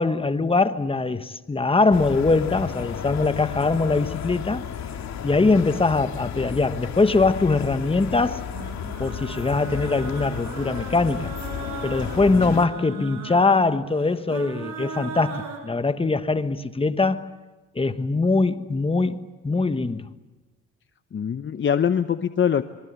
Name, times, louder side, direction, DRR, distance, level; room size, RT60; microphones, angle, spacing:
voice 1, 0.0-4.6 5.2-8.4 9.0-11.3 11.8-17.3 17.7-20.1, left 3 dB, 20° left, 1.3 m, -22 dB
sound 1, 1.9-12.7, left 8 dB, 65° left, 2.5 m, -33 dB
sound 2, 8.5-15.6, right 4 dB, 75° right, 6.1 m, -38 dB
voice 2, 12.3-12.6 12.9-13.2 21.1-22.6, left 8 dB, 40° left, 1.0 m, -24 dB
25.5 x 22.5 x 8.3 m
cardioid pair, 90°, 30 cm